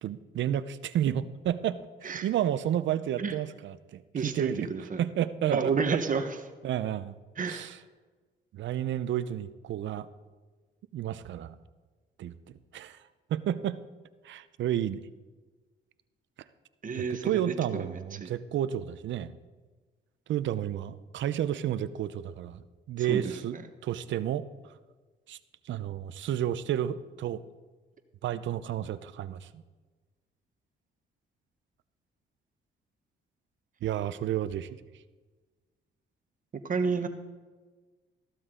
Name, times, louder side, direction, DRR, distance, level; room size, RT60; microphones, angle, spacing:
voice 1, 0.0-4.7 5.0-5.7 6.6-7.1 7.5-7.8 8.5-10.1 10.9-11.6 12.2-12.3 12.7-13.0 13.3-13.8 14.2-15.0 17.0-19.4 20.3-23.5 23.8-24.5 25.3-25.4 25.7-27.4 28.2-29.6 33.8-34.7, right 11 dB, 70° right, 14 dB, 0.7 m, -31 dB
voice 2, 4.1-5.0 5.5-6.4 7.4-7.7 16.8-18.3 23.0-23.6 36.6-37.1, right 5 dB, 40° right, 8 dB, 1.2 m, -31 dB
14.5 x 12.5 x 3.8 m, 1.3 s
cardioid pair, 90°, 20 cm